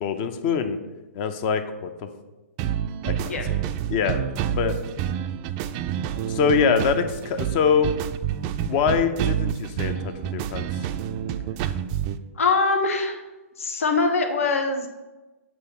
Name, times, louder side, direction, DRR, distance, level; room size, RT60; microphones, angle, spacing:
voice 1, 0.0-0.8 1.1-2.1 3.0-3.6 3.9-4.8 6.3-7.9 8.6-10.7, left 6 dB, 40° left, 9 dB, 0.7 m, -24 dB
sound 1, 2.6-12.2, right 9 dB, 35° right, 0.4 m, -28 dB
voice 2, 12.3-13.2 13.6-14.9, left 3 dB, 70° left, 4 dB, 1.1 m, -23 dB
7.9 x 3.1 x 5.8 m, 1.1 s
figure-of-eight pair, 120°, 8 cm